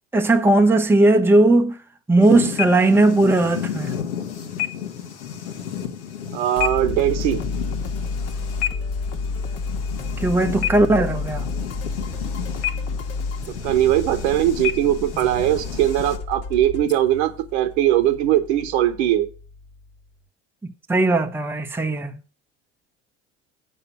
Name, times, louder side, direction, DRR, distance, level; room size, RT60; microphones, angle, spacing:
voice 1, 0.1-1.8 2.1-4.0 10.2-11.5 20.6-22.2, right 2 dB, 5° right, 0.8 m, -18 dB
sound 1, 2.2-16.2, left 10 dB, 70° left, 1.3 m, -32 dB
voice 2, 6.3-7.4 13.6-19.3, right 12 dB, 65° right, 1.2 m, -20 dB
sound 2, 6.6-19.9, left 4 dB, 40° left, 1.6 m, -31 dB
8.1 x 5.5 x 6.7 m
figure-of-eight pair, 65°, 36 cm